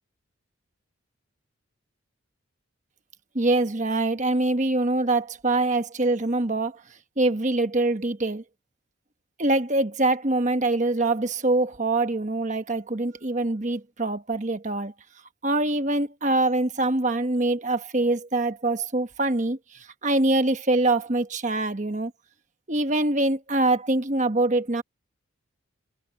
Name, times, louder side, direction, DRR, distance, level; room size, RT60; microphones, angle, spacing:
voice 1, 3.3-6.8 7.2-8.4 9.4-14.9 15.4-22.1 22.7-24.8, right 2 dB, 35° right, 1.3 m, -24 dB
head